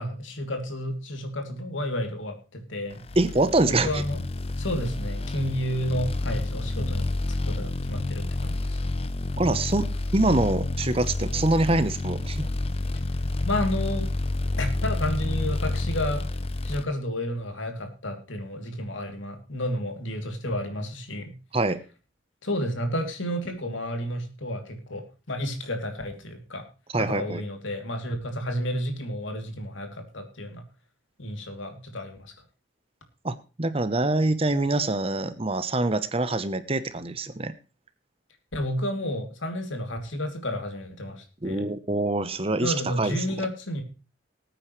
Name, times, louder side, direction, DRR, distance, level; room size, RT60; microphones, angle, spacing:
voice 1, 0.0-3.0 3.7-4.2 4.6-8.8 13.5-14.1 14.6-16.2 16.6-21.3 22.4-26.7 27.0-30.6 31.2-32.3 38.5-41.7 42.6-43.8, equal, 70° left, 5 dB, 2.8 m, -31 dB
sound 1, 3.0-16.8, left 2 dB, 30° left, 0.7 m, -29 dB
voice 2, 3.2-4.0 9.4-12.5 21.5-21.8 26.9-27.4 33.2-37.5 41.4-43.2, right 2 dB, 30° right, 13 dB, 0.8 m, -25 dB
19.5 x 9.0 x 3.2 m, 0.33 s
head